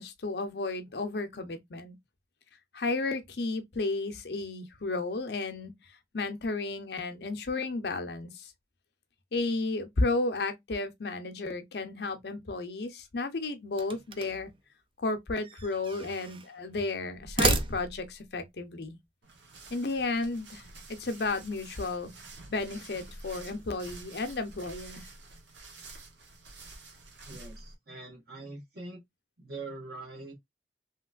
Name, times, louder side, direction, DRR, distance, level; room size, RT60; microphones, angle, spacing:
voice 1, 0.0-2.0 2.7-5.7 6.1-8.5 9.3-14.5 15.0-19.0 19.7-20.6 20.9-22.1 22.5-25.1, left 3 dB, 65° left, 0.7 m, -33 dB
sound 1, 13.7-14.5 15.4-16.5 17.2-18.2, right 3 dB, 30° right, 0.4 m, -32 dB
sound 2, 19.2-27.7, right 2 dB, 90° right, 0.8 m, -49 dB
voice 2, 27.3-29.0 29.4-30.3, right 3 dB, 55° right, 1.1 m, -43 dB
3.1 x 2.9 x 2.3 m
head